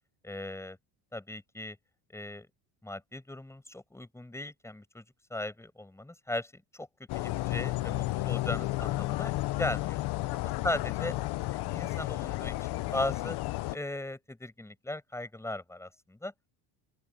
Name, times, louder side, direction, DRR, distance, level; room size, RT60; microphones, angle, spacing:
voice 1, 0.2-0.8 1.1-1.8 2.1-2.5 2.8-5.0 5.3-6.9 7.1-9.3 9.6-10.0 10.6-11.1 11.5-13.4 13.7-16.3, left 1 dB, 5° left, 7.3 m, -37 dB
sound 1, 7.1-13.8, left 18 dB, 55° left, 0.8 m, -32 dB
open air
cardioid pair, 155°, 46 cm